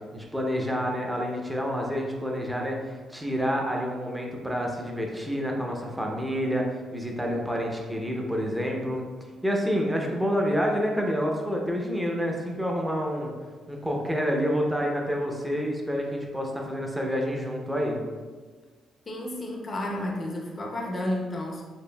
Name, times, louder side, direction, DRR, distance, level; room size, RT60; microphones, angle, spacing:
voice 1, 0.1-9.0 9.4-13.3 13.7-18.0, equal, 5° right, 0 dB, 0.6 m, -28 dB
voice 2, 19.1-21.6, left 1 dB, 35° left, 0 dB, 0.6 m, -31 dB
4.3 x 3.0 x 2.3 m, 1.4 s
cardioid pair, 90°, 0 cm